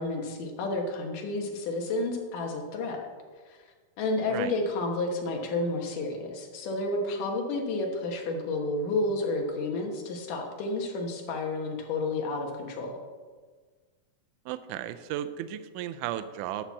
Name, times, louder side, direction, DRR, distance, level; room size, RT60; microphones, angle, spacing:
voice 1, 0.0-3.0 3.5-3.6 4.0-13.0, left 2 dB, 70° left, 1 dB, 2.8 m, -31 dB
voice 2, 14.5-16.6, right 12 dB, 80° right, 11 dB, 1.9 m, -34 dB
11.5 x 4.4 x 7.1 m, 1.5 s
omnidirectional pair, 4.0 m